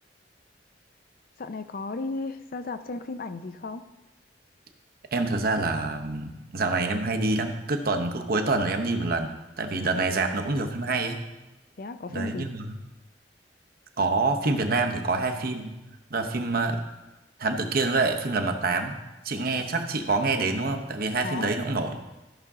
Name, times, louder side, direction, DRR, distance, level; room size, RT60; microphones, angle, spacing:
voice 1, 1.4-3.8 10.0-10.1 11.8-12.5 21.2-21.6, left 3 dB, 55° left, 11 dB, 0.5 m, -34 dB
voice 2, 5.1-11.2 12.1-12.7 14.0-15.8 16.1-16.8 17.4-19.0 19.2-22.0, right 3 dB, 55° right, 5 dB, 0.9 m, -26 dB
13.5 x 6.0 x 3.7 m, 1.0 s
head